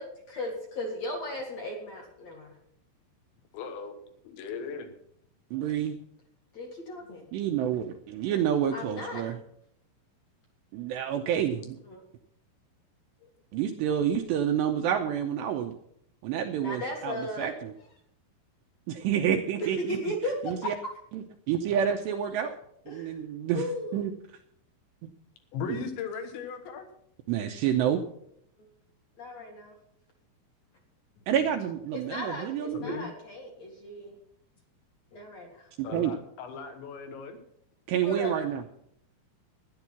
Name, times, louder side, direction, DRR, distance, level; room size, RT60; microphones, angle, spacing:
voice 1, 0.3-2.5 6.5-7.3 8.7-9.2 11.9-12.0 16.6-17.6 19.6-20.3 20.6-20.7 22.9-23.2 23.5-24.1 28.6-28.7 29.2-29.7 31.9-34.2 35.1-35.7 38.0-38.4, left 1 dB, 50° left, 1 dB, 2.2 m, -36 dB
voice 2, 3.5-4.0 4.2-4.9 13.2-13.3 25.5-26.9 31.2-31.5 32.7-33.1 35.8-37.4, left 6 dB, 70° left, 6 dB, 3.4 m, -37 dB
voice 3, 5.5-6.0 7.3-9.4 10.7-11.8 13.5-15.8 16.2-17.7 18.9-20.0 20.5-20.7 21.1-22.6 22.9-23.7 23.9-24.1 25.0-25.1 25.7-25.8 27.3-28.0 31.3-32.8 35.8-36.1 37.9-38.6, right 9 dB, 85° right, 4 dB, 2.5 m, -28 dB
13.0 x 10.5 x 5.9 m, 0.71 s
omnidirectional pair, 5.7 m